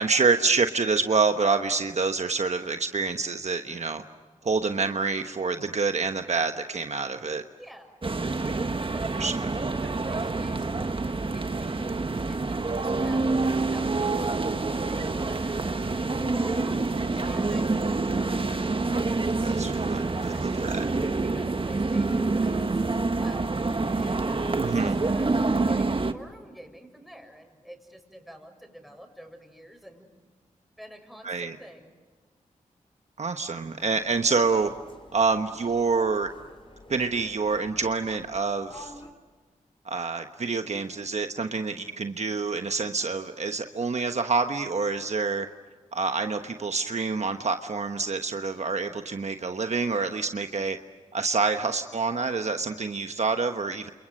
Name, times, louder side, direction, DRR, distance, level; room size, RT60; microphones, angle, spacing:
voice 1, 0.0-4.0 4.4-7.4 9.2-9.3 19.4-20.8 24.6-25.0 31.2-31.6 33.2-34.7 35.1-36.3 36.9-38.9 39.8-45.5 45.9-50.8 51.1-53.9, right 4 dB, 55° right, 7 dB, 1.2 m, -27 dB
voice 2, 7.6-8.0 8.4-11.9 12.3-18.5 20.1-30.1 30.8-31.9, equal, ahead, 4 dB, 7.0 m, -48 dB
sound 1, 8.0-26.1, right 3 dB, 40° right, 1.5 m, -27 dB
sound 2, 33.8-39.1, left 1 dB, 40° left, 5.6 m, -49 dB
29.0 x 28.5 x 6.6 m, 1.4 s
cardioid pair, 45°, 14 cm